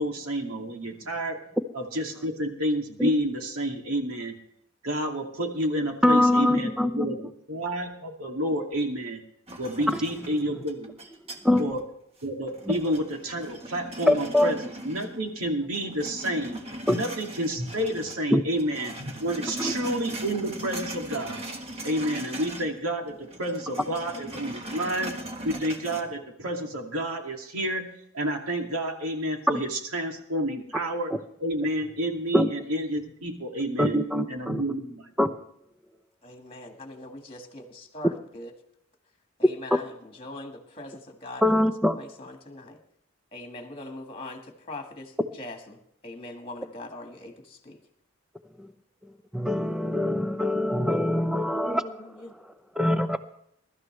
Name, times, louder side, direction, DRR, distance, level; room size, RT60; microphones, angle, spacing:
voice 1, 0.0-1.4 1.7-4.3 4.8-9.2 9.6-10.9 11.6-11.8 12.2-16.6 16.9-21.4 21.8-25.1 25.4-27.9 28.1-31.1 31.4-34.0 34.3-35.0, right 1 dB, 85° right, 2 dB, 2.4 m, -30 dB
voice 2, 6.0-7.1 9.9-10.0 11.4-11.7 12.7-12.8 14.1-14.5 16.9-17.0 18.3-18.4 19.6-19.7 32.3-32.5 33.8-34.6 35.2-35.4 39.7-39.8 41.4-42.0 49.3-51.8 52.8-53.2, left 1 dB, 5° right, 9 dB, 0.7 m, -23 dB
sound 1, 9.5-11.8 12.2-15.4 15.7-18.2 18.5-22.8 23.0-26.0, right 1 dB, 30° right, 1.4 m, -39 dB
voice 3, 36.2-38.5 39.4-41.6 41.9-42.8 43.3-47.8 51.4-52.3, left 2 dB, 25° left, 4 dB, 1.7 m, -42 dB
22.0 x 12.5 x 3.3 m, 0.72 s
head